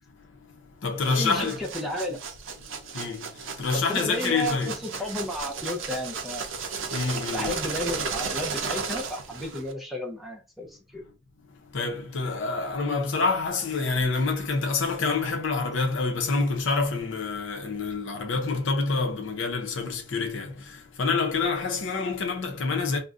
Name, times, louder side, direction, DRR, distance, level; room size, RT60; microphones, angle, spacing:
voice 1, 0.2-1.6 2.7-5.0 6.9-7.5 11.5-23.0, left 4 dB, 70° left, 0.7 m, -27 dB
sound 1, 1.0-9.7, right 5 dB, 70° right, 0.6 m, -34 dB
voice 2, 1.1-2.2 3.7-6.5 7.3-11.0, left 1 dB, ahead, 0.5 m, -33 dB
2.5 x 2.1 x 3.6 m
head